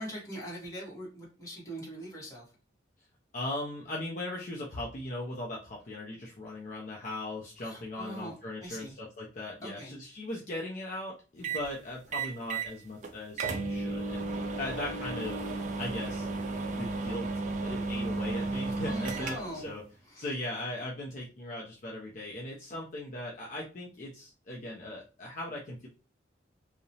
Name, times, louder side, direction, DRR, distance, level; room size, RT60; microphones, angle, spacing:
voice 1, 0.0-2.5 7.6-8.9 9.6-10.0 18.8-19.7 20.1-20.3, equal, 20° left, -4 dB, 1.0 m, -41 dB
voice 2, 3.3-14.3 14.6-15.4 15.8-16.3 16.7-17.3 17.6-19.8 20.2-25.9, left 1 dB, 45° left, -2 dB, 0.4 m, -38 dB
sound 1, 11.4-11.7 12.1-12.7 13.0-13.1 13.4-19.7, right 3 dB, 40° right, 0.3 m, -34 dB
2.8 x 2.0 x 2.6 m, 0.34 s
head